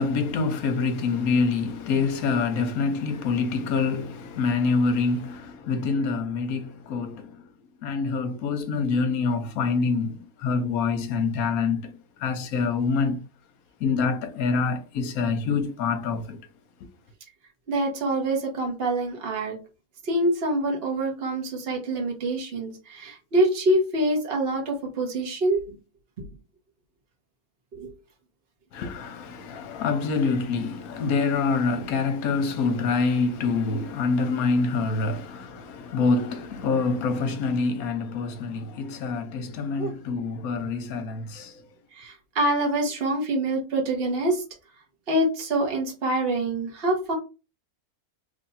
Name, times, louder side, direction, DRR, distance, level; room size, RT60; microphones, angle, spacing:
voice 1, 0.0-7.4 7.8-13.2 13.8-16.4 28.7-41.7, left 4 dB, 75° left, 1.2 m, -26 dB
voice 2, 17.7-19.6 20.0-25.8 27.7-27.9 39.8-39.9 41.9-44.4 45.1-47.1, right 1 dB, 45° right, 1.3 m, -25 dB
3.3 x 2.6 x 4.1 m
omnidirectional pair, 1.5 m